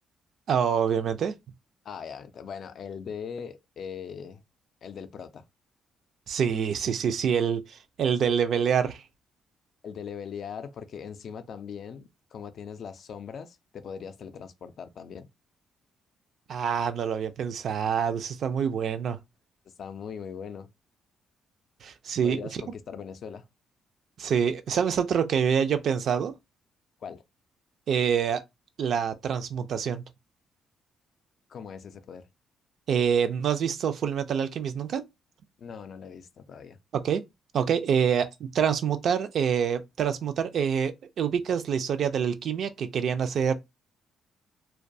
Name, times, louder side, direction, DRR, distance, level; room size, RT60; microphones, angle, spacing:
voice 1, 0.5-1.3 6.3-9.0 16.5-19.2 21.8-22.4 24.2-26.3 27.9-28.4 28.8-30.0 32.9-35.1 36.9-37.2 37.5-43.5, right 7 dB, 65° right, 0.3 m, -26 dB
voice 2, 1.8-4.4 4.8-5.5 9.8-15.3 19.8-20.7 22.2-23.4 27.0-27.2 31.5-32.3 35.6-36.8, left 7 dB, 60° left, 0.3 m, -40 dB
2.3 x 2.2 x 2.6 m
cardioid pair, 90°, 0 cm